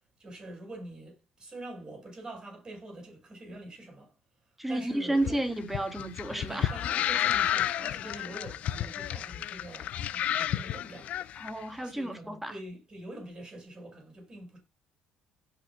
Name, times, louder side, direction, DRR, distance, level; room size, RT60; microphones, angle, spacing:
voice 1, 0.0-4.1 4.7-5.4 6.3-11.2 11.8-14.6, right 1 dB, 30° right, 7.2 m, -45 dB
voice 2, 4.6-6.7 11.4-12.5, right 1 dB, 10° right, 2.2 m, -31 dB
sound 1, 5.2-11.5, left 11 dB, 60° left, 0.7 m, -31 dB
16.0 x 5.6 x 2.3 m
hypercardioid pair, 60°, 3 cm